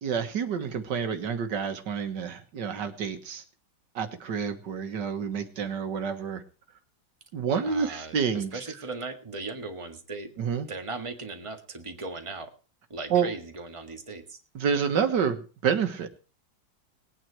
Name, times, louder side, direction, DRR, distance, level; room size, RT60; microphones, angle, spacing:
voice 1, 0.0-3.4 4.0-6.4 7.3-8.6 10.4-10.7 13.1-13.3 14.5-16.1, right 7 dB, 85° right, 8 dB, 2.0 m, -28 dB
voice 2, 7.6-10.3 10.7-12.5 12.9-14.4, right 3 dB, 20° right, 5 dB, 1.7 m, -38 dB
19.5 x 9.1 x 4.7 m, 0.36 s
omnidirectional pair, 1.8 m